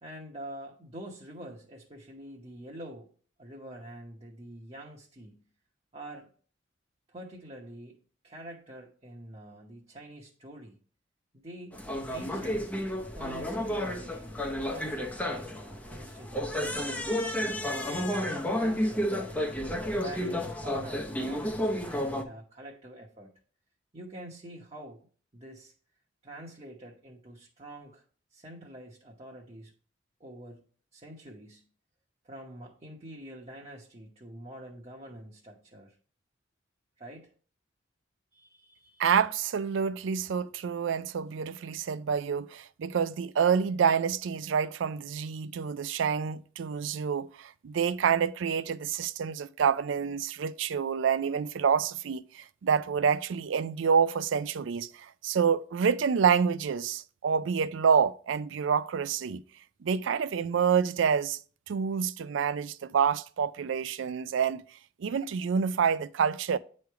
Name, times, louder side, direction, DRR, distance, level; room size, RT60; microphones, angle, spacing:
voice 1, 0.0-3.1 3.4-5.5 5.9-6.3 7.1-8.0 8.2-10.8 11.3-12.8 13.1-16.8 17.4-19.5 20.0-23.3 23.9-25.1 25.3-25.7 26.2-28.0 28.3-29.7 30.2-30.6 30.9-31.7 32.2-36.0 37.0-37.3 38.3-39.0, right 1 dB, 30° right, 1.0 m, -46 dB
sound 1, 11.7-22.2, equal, 10° left, 0.6 m, -31 dB
voice 2, 39.0-59.4 59.8-61.4 61.7-64.6 65.0-66.6, right 6 dB, 75° right, 0.4 m, -27 dB
9.5 x 3.2 x 4.6 m
head